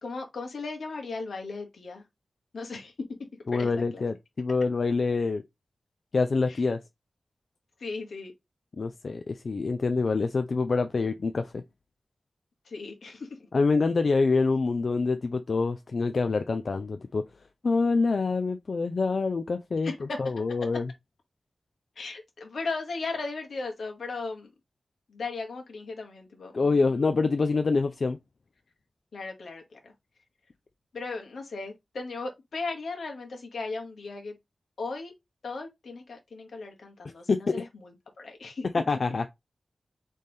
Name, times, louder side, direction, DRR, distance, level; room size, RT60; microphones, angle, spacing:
voice 1, 0.0-2.0 2.5-2.9 3.5-4.0 6.5-6.6 7.8-8.3 12.6-13.5 19.8-20.2 22.0-24.5 25.1-26.8 29.1-29.9 30.9-34.4 34.8-35.1 35.4-38.7, left 3 dB, 85° left, 1.4 m, -37 dB
voice 2, 3.5-5.4 6.1-6.8 8.8-11.6 13.5-17.2 17.6-19.9 20.2-20.9 26.5-28.2 37.3-37.4 38.7-39.3, left 4 dB, 55° left, 0.4 m, -26 dB
4.2 x 3.3 x 3.5 m
wide cardioid pair, 125°, 0 cm